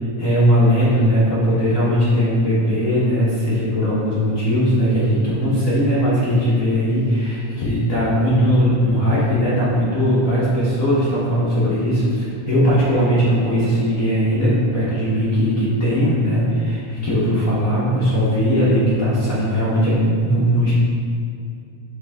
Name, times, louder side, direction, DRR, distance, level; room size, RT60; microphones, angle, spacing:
voice 1, 0.2-20.7, equal, 55° left, -9 dB, 0.9 m, -19 dB
6.6 x 4.6 x 3.6 m, 2.5 s
omnidirectional pair, 3.4 m